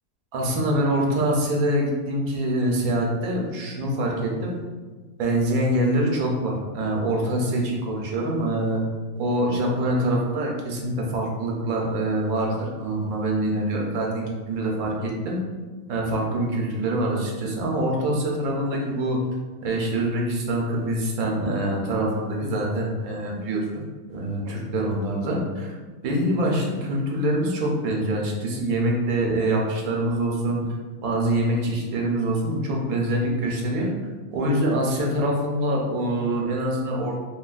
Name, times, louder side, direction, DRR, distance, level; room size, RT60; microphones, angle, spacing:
voice 1, 0.3-4.6 5.2-8.8 9.2-15.4 15.9-19.2 19.6-25.7 26.0-30.6 31.0-33.9 34.3-37.2, right 1 dB, 90° right, -1 dB, 1.1 m, -25 dB
2.8 x 2.7 x 2.3 m, 1.4 s
omnidirectional pair, 1.5 m